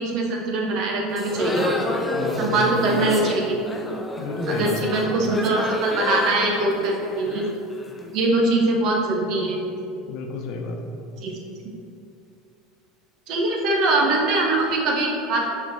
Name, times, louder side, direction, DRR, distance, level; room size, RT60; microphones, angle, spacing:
voice 1, 0.0-1.8 2.4-3.6 4.6-7.4 8.1-9.6 11.2-11.3 13.3-15.5, right 2 dB, 60° right, 0 dB, 1.1 m, -22 dB
sound 1, 1.1-8.1, left 2 dB, 15° left, 0.7 m, -29 dB
voice 2, 2.1-2.8 4.2-4.9 10.1-10.9, left 3 dB, 60° left, 3 dB, 0.8 m, -31 dB
6.0 x 4.4 x 4.2 m, 2.6 s
hypercardioid pair, 80°, 0 cm